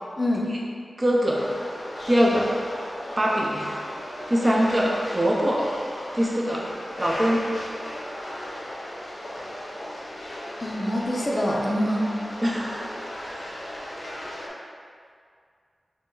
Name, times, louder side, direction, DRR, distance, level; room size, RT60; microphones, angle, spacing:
voice 1, 0.2-0.5 10.6-12.2, equal, 30° left, -2 dB, 0.6 m, -25 dB
voice 2, 1.0-1.4 2.1-2.5 3.2-3.8 4.3-5.6 6.1-6.7 7.0-7.5 12.4-12.9 13.3-13.7, equal, 35° right, -3 dB, 0.7 m, -23 dB
sound 1, 1.3-14.5, left 1 dB, 55° left, 0.9 m, -36 dB
5.1 x 2.1 x 3.9 m, 2.2 s
cardioid pair, 60°, 0 cm